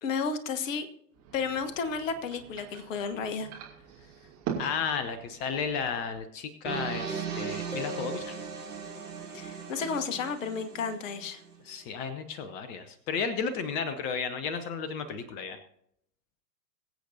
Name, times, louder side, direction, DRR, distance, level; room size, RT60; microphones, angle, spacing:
voice 1, 0.0-0.9 1.3-3.5 9.3-11.4, left 5 dB, 50° left, 10 dB, 1.3 m, -32 dB
sound 1, 1.1-6.2, right 8 dB, 30° right, 2.5 m, -42 dB
voice 2, 4.6-8.4 11.6-15.6, left 6 dB, 20° left, 11 dB, 0.5 m, -33 dB
sound 2, 6.6-11.6, right 6 dB, 75° right, 3.3 m, -38 dB
sound 3, 7.7-9.2, left 3 dB, 5° right, 2.3 m, -42 dB
22.5 x 8.1 x 2.7 m, 0.72 s
figure-of-eight pair, 100°, 49 cm